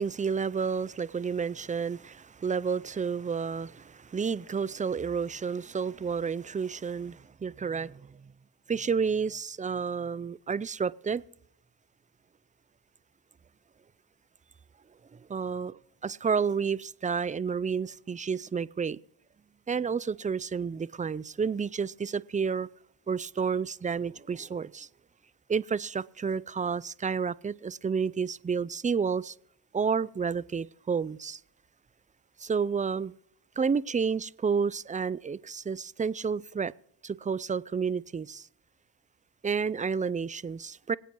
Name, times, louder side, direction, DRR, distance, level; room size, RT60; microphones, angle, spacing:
voice 1, 0.0-8.2 8.7-11.2 15.3-15.7 16.0-19.0 19.7-22.7 23.1-24.9 25.5-29.3 29.7-31.4 32.4-33.1 33.6-36.7 37.0-38.5 39.4-41.0, right 6 dB, 15° right, 0.4 m, -30 dB
26.0 x 8.9 x 3.0 m
supercardioid pair, 45°, 50 cm